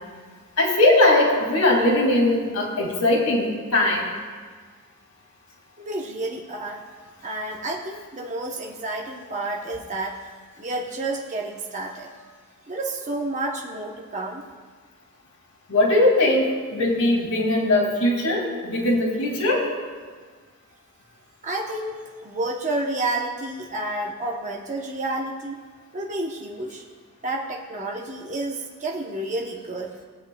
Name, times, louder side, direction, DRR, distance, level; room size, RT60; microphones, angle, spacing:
voice 1, 0.6-4.1 15.7-19.7, left 1 dB, 90° left, -1 dB, 2.3 m, -20 dB
voice 2, 5.8-6.8 7.2-10.2 10.6-12.1 12.7-14.5 21.4-25.6 25.9-26.8 27.2-29.9, right 2 dB, 35° right, -1 dB, 0.9 m, -30 dB
19.5 x 8.2 x 2.3 m, 1.5 s
head